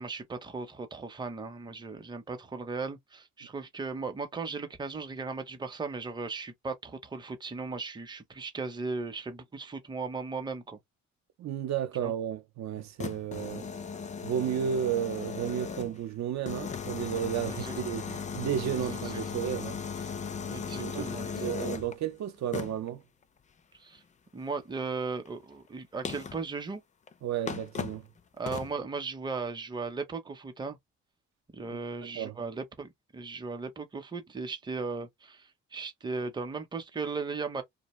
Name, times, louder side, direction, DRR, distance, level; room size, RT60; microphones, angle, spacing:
voice 1, 0.0-10.8 12.0-12.1 13.5-13.7 17.4-17.7 18.8-19.2 20.5-21.8 23.7-24.0 24.3-26.8 28.4-30.8 31.5-37.6, right 4 dB, 15° right, 0.6 m, -37 dB
voice 2, 11.4-13.6 14.2-19.8 20.8-21.1 21.4-23.0 27.2-28.1 31.7-31.8 32.1-32.3, right 9 dB, 65° right, 0.6 m, -33 dB
sound 1, 12.8-16.0 16.5-21.9 22.5-22.9 25.2-25.3 26.0-26.4 27.1-27.2 27.5-28.0 28.5-28.7, left 6 dB, 25° left, 0.4 m, -37 dB
2.4 x 2.2 x 3.0 m
cardioid pair, 90°, 30 cm